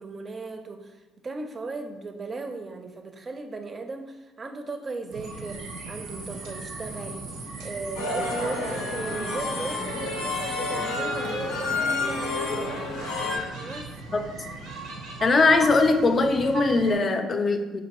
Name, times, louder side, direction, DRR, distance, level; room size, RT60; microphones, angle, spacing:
voice 1, 0.0-7.3 7.6-13.9, right 3 dB, 35° right, 6 dB, 0.5 m, -37 dB
sound 1, 5.1-16.9, right 3 dB, 75° right, 0.6 m, -38 dB
sound 2, 8.0-13.4, left 3 dB, 85° left, 0.5 m, -30 dB
voice 2, 15.2-17.8, left 3 dB, 40° left, 7 dB, 0.4 m, -21 dB
4.3 x 2.6 x 2.9 m, 1.2 s
hypercardioid pair, 60°, 0 cm